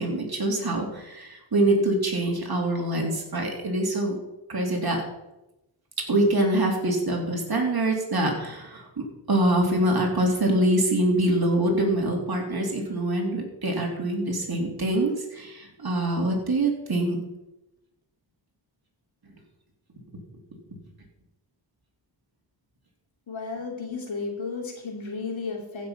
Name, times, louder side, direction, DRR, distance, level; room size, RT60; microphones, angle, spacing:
voice 1, 0.0-4.2 4.5-5.0 6.1-8.9 9.3-17.2, right 1 dB, 50° right, 0 dB, 3.4 m, -24 dB
voice 2, 23.3-25.9, left 4 dB, 75° left, 1 dB, 3.0 m, -33 dB
15.0 x 6.7 x 5.8 m, 0.95 s
cardioid pair, 65°, 47 cm